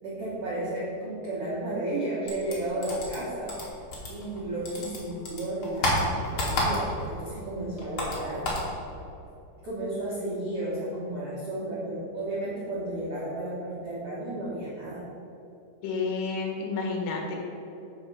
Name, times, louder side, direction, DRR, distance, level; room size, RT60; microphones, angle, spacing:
voice 1, 0.0-3.5 4.1-8.5 9.6-15.0, right 1 dB, 90° right, -8 dB, 1.3 m, -33 dB
sound 1, 2.3-4.4 4.7-7.1 7.4-8.7, left 1 dB, 60° left, 1.4 m, -29 dB
voice 2, 15.8-17.4, left 4 dB, 75° left, 0 dB, 3.1 m, -30 dB
9.7 x 4.3 x 6.0 m, 2.8 s
omnidirectional pair, 5.1 m